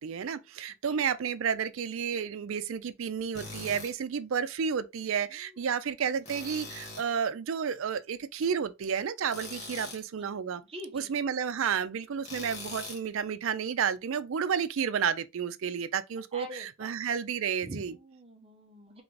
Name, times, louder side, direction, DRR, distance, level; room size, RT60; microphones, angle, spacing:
voice 1, 0.0-10.6 10.9-18.0, right 7 dB, 70° right, 0.4 m, -31 dB
Tools, 3.3-3.9 6.2-7.1 9.3-10.0 12.2-13.1, left 3 dB, 30° left, 1.2 m, -42 dB
voice 2, 9.8-10.3 10.7-11.1 16.3-17.0 17.6-19.0, right 1 dB, 25° right, 0.8 m, -44 dB
3.8 x 3.4 x 3.1 m
head